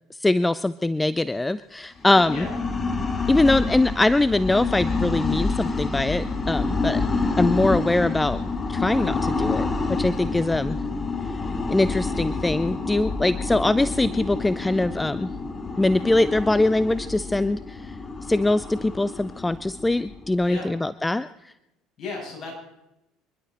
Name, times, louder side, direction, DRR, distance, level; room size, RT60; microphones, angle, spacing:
voice 1, 0.2-2.4 3.3-7.0 7.4-8.4 8.7-10.8 11.7-15.3 15.8-17.8 18.3-21.5, left 2 dB, 15° left, 16 dB, 0.5 m, -22 dB
sound 1, 2.0-20.7, left 3 dB, 30° left, 2.1 m, -28 dB
voice 2, 15.7-16.1 20.4-20.7 22.0-22.5, left 3 dB, 45° left, -1 dB, 7.6 m, -35 dB
27.0 x 11.5 x 4.3 m, 0.91 s
hypercardioid pair, 75°, 0 cm